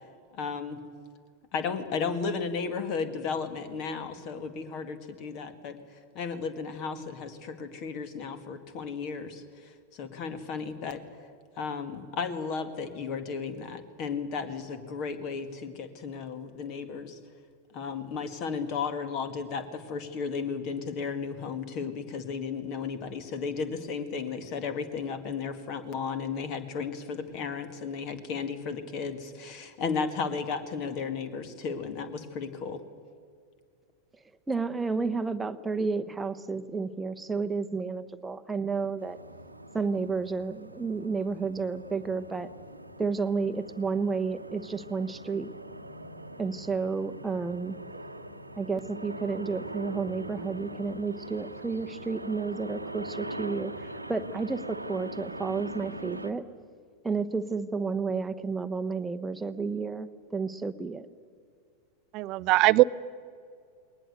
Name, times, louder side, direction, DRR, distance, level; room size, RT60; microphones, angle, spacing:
voice 1, 0.3-0.8 1.5-5.8 6.1-11.0 11.6-17.2 17.7-32.8, left 5 dB, 40° left, 10 dB, 2.0 m, -34 dB
voice 2, 34.5-39.2 39.7-42.5 43.0-45.5 46.4-47.8 48.6-53.7 54.1-56.4 57.0-61.1, right 4 dB, 10° right, 8 dB, 1.0 m, -31 dB
sound 1, 39.0-56.3, right 1 dB, 85° right, 1.0 m, -42 dB
voice 3, 62.1-62.8, right 20 dB, 40° right, 19 dB, 0.5 m, -20 dB
21.0 x 19.0 x 8.2 m, 2.2 s
figure-of-eight pair, 90°, 0 cm